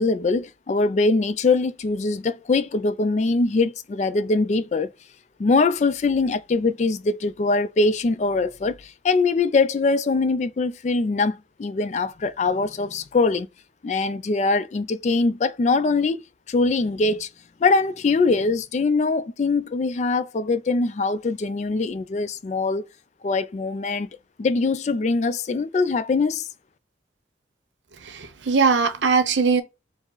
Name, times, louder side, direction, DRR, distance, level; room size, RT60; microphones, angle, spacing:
voice 1, 0.0-4.9 5.4-13.5 13.8-17.3 17.6-22.9 23.2-24.1 24.4-26.5, left 3 dB, 40° left, 0.3 m, -22 dB
voice 2, 28.0-29.6, right 5 dB, 85° right, 0.7 m, -20 dB
4.8 x 2.0 x 3.8 m
head